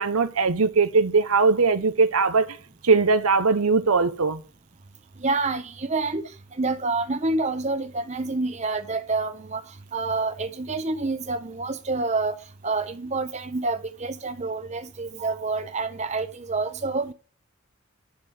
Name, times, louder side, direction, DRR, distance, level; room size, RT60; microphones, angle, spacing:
voice 1, 0.0-2.5 2.8-4.4, right 4 dB, 90° right, 1.0 m, -20 dB
voice 2, 5.2-6.2 6.6-9.6 9.9-12.4 12.6-17.1, right 3 dB, 30° right, 0.8 m, -27 dB
11.5 x 4.8 x 7.3 m
head